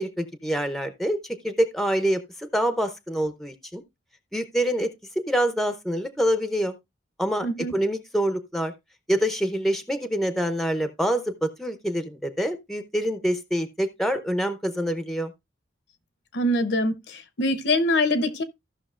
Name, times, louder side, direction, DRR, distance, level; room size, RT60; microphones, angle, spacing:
voice 1, 0.0-3.8 4.3-4.9 5.3-6.7 7.2-7.5 7.7-8.7 9.1-15.3, equal, ahead, 0.6 m, -26 dB
voice 2, 7.4-7.7 16.3-18.4, left 1 dB, 65° left, 0.9 m, -24 dB
15.0 x 5.8 x 2.4 m
head